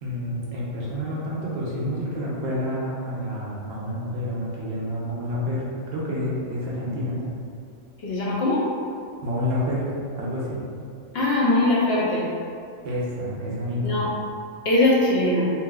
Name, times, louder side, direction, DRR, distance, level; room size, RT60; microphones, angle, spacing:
voice 1, 0.0-7.3 9.2-9.9 10.2-10.6 12.8-13.9, left 1 dB, 65° right, -5 dB, 0.8 m, -28 dB
voice 2, 8.0-8.7 11.1-12.3 13.8-14.1 14.6-15.5, left 2 dB, 65° left, -6 dB, 0.7 m, -21 dB
2.7 x 2.6 x 2.2 m, 2.4 s
omnidirectional pair, 1.2 m